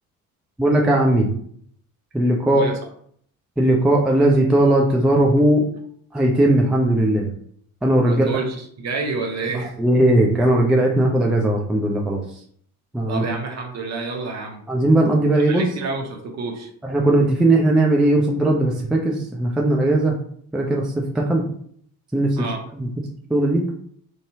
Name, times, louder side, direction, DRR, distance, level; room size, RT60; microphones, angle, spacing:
voice 1, 0.6-1.3 2.1-2.7 3.6-5.6 6.1-7.3 7.8-8.3 9.8-12.2 12.9-13.2 14.7-15.7 16.8-20.1 20.5-21.4 22.1-22.9 23.3-23.6, right 1 dB, ahead, 0 dB, 0.4 m, -18 dB
voice 2, 8.0-9.7 13.1-14.6 15.3-16.7 22.4-22.6, right 3 dB, 40° right, 3 dB, 0.7 m, -29 dB
2.6 x 2.3 x 2.8 m, 0.62 s
hypercardioid pair, 50°, 42 cm